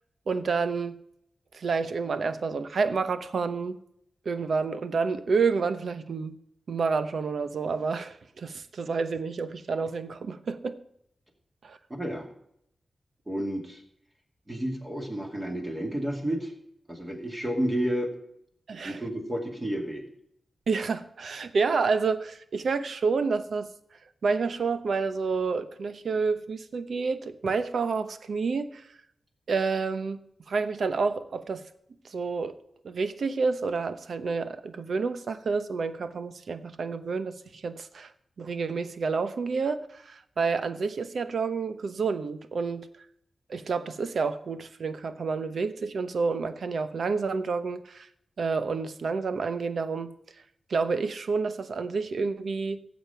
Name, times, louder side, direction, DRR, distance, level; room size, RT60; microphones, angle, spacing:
voice 1, 0.3-1.0 1.5-3.8 4.2-6.3 6.7-10.8 11.6-11.8 18.7-19.0 20.7-23.7 24.2-28.8 29.5-30.2 30.5-31.6 32.0-32.5 32.8-38.1 38.4-42.9 43.5-48.1 48.4-50.1 50.7-52.8, right 4 dB, 70° right, 11 dB, 0.9 m, -29 dB
voice 2, 11.9-12.3 13.3-13.8 14.5-16.5 16.9-18.1 18.8-20.1, right 1 dB, 15° right, 2 dB, 2.4 m, -31 dB
16.0 x 7.4 x 5.7 m, 0.74 s
wide cardioid pair, 140°, 0 cm